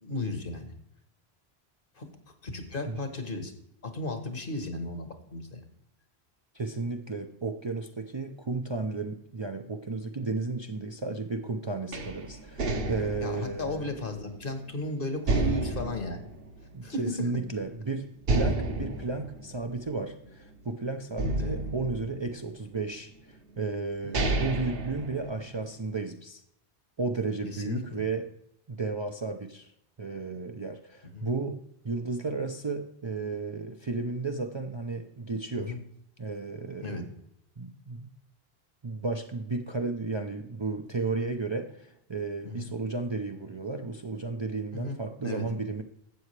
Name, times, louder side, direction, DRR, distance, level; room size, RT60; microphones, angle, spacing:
voice 1, 0.0-0.7 2.0-2.1 2.4-3.5 3.8-5.6 13.2-16.2 16.8-17.0 21.4-21.6 24.0-24.3 27.4-28.0 31.0-31.3 35.6-35.8 36.8-37.0 42.4-42.7 44.7-45.4, left 2 dB, 60° left, 6 dB, 1.6 m, -35 dB
voice 2, 6.5-13.8 16.7-26.4 27.0-28.3 28.7-29.7 30.0-35.8 36.2-37.1 37.6-38.1 38.8-45.8, right 3 dB, 35° right, 5 dB, 0.5 m, -33 dB
sound 1, 11.9-14.7 15.3-17.2 17.5-17.6 18.2-20.6 21.2-22.8 23.5-23.6 23.9-25.8, right 2 dB, 65° right, 1.2 m, -31 dB
12.5 x 8.3 x 3.3 m, 0.75 s
omnidirectional pair, 1.1 m